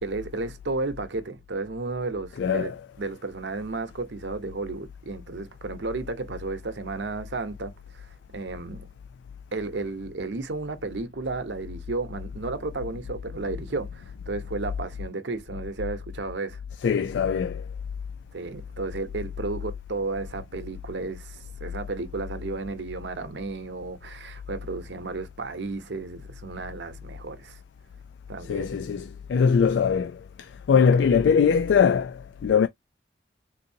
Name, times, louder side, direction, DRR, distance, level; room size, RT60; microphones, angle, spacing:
voice 1, 0.0-2.7 3.0-8.9 9.5-16.6 18.3-27.6 28.3-28.7 30.7-30.9, right 3 dB, 85° right, 0.8 m, -33 dB
voice 2, 2.4-2.8 16.8-17.6 28.4-32.7, left 6 dB, 90° left, 0.3 m, -22 dB
3.8 x 2.7 x 2.7 m
head